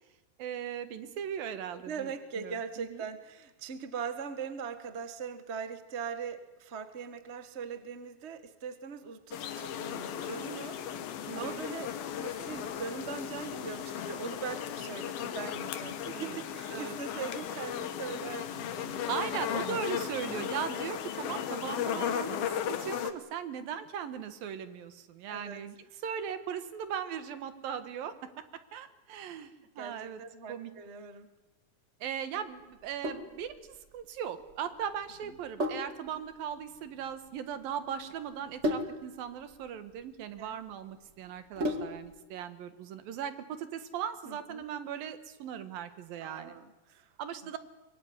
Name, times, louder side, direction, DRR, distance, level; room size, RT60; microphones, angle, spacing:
voice 1, 0.4-2.1 2.4-3.0 11.3-11.7 16.1-16.4 16.7-17.0 19.1-25.8 26.0-28.4 28.7-30.2 30.5-30.7 32.0-46.6 47.2-47.6, right 8 dB, 75° right, 11 dB, 3.3 m, -38 dB
voice 2, 1.7-10.8 11.3-19.7 25.3-25.6 29.8-31.3 35.2-35.4 40.4-40.6 44.2-44.6 46.2-47.1, right 6 dB, 45° right, 10 dB, 0.8 m, -41 dB
sound 1, 9.3-23.1, left 9 dB, 80° left, 3.3 m, -36 dB
Sink (filling or washing), 32.7-42.2, equal, 25° right, 2.0 m, -38 dB
24.0 x 23.5 x 9.7 m, 1.1 s
omnidirectional pair, 4.2 m